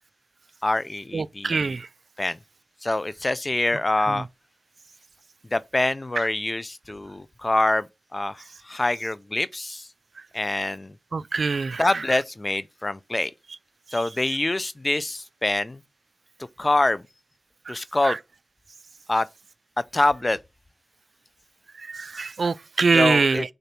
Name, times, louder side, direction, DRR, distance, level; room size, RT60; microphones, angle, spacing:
voice 1, 0.6-1.8 2.2-2.4 2.8-4.3 5.5-7.9 8.1-9.9 10.3-10.9 11.8-13.3 13.9-15.8 16.6-17.0 17.7-18.2 19.1-19.3 19.9-20.4 22.9-23.5, left 2 dB, 30° left, 0.5 m, -25 dB
voice 2, 1.1-1.8 11.1-11.8 18.0-18.1 21.9-23.5, right 4 dB, 60° right, 0.3 m, -23 dB
6.8 x 4.0 x 5.9 m
cardioid pair, 60°, 0 cm